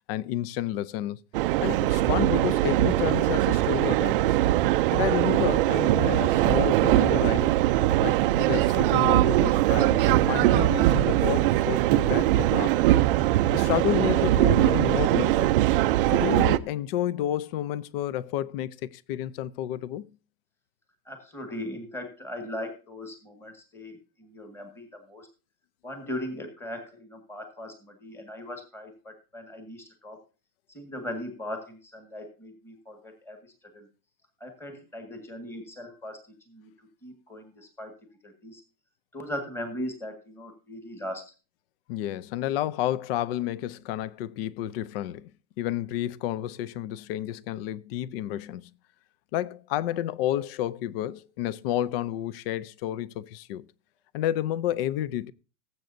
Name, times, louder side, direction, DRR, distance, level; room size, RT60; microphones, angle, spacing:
voice 1, 0.1-1.2 1.6-4.3 4.9-7.5 8.0-12.7 13.5-15.6 16.1-20.1 41.9-45.3 45.6-48.7 49.3-53.6 54.1-55.3, left 12 dB, 40° left, 0.4 m, -30 dB
sound 1, 1.3-16.6, right 15 dB, 35° right, 0.4 m, -22 dB
voice 2, 21.0-25.3 25.8-30.2 30.7-33.9 34.4-37.9 38.2-38.6 39.1-41.2, left 1 dB, 5° left, 1.7 m, -39 dB
19.0 x 7.9 x 2.6 m
supercardioid pair, 145°, 50 cm